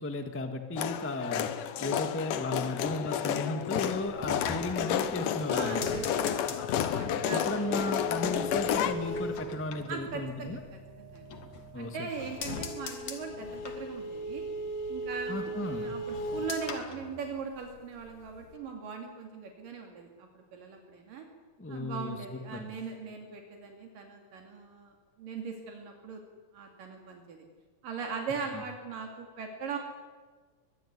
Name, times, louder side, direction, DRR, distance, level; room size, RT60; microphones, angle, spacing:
voice 1, 0.0-5.8 6.9-10.6 11.7-12.1 15.3-15.9 21.6-22.7, left 2 dB, 10° left, 7 dB, 0.7 m, -35 dB
sound 1, 0.8-9.0, left 10 dB, 75° left, 2.8 m, -31 dB
sound 2, 3.2-12.4, right 2 dB, 40° right, 4.9 m, -53 dB
sound 3, 4.0-10.7 11.1-11.8 12.1-17.8 18.1-18.6, left 1 dB, 60° left, 3.1 m, -38 dB
voice 2, 5.5-6.5 7.0-7.6 9.9-11.3 11.8-14.5 14.9-21.3 21.7-26.2 26.5-27.4 27.8-29.8, right 5 dB, 75° right, 3 dB, 4.1 m, -40 dB
23.5 x 21.5 x 9.6 m, 1.4 s
omnidirectional pair, 3.9 m